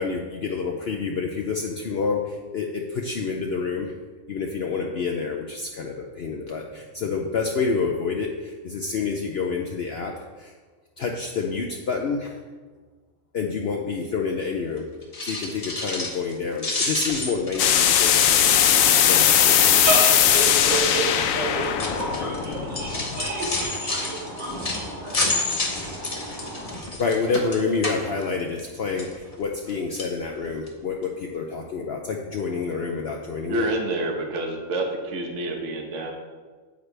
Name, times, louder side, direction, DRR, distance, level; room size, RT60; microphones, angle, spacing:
voice 1, 0.0-3.9 4.3-10.5 11.0-12.3 13.3-14.9 15.2-18.8 19.1-19.6 27.0-33.7, left 4 dB, 55° left, 1 dB, 0.8 m, -28 dB
sound 1, 15.0-16.3 16.6-19.7 20.1-20.4 21.1-28.7 29.0-29.7 30.0-30.1 30.7-30.8 31.0-31.1, left 2 dB, 30° left, 1.1 m, -30 dB
sound 2, 17.6-23.3, left 9 dB, 85° left, 1.0 m, -19 dB
voice 2, 18.4-26.8, right 2 dB, 85° right, -4 dB, 2.5 m, -30 dB
voice 3, 33.5-36.1, right 1 dB, 65° right, 2 dB, 1.4 m, -28 dB
9.1 x 8.2 x 3.3 m, 1.4 s
omnidirectional pair, 1.4 m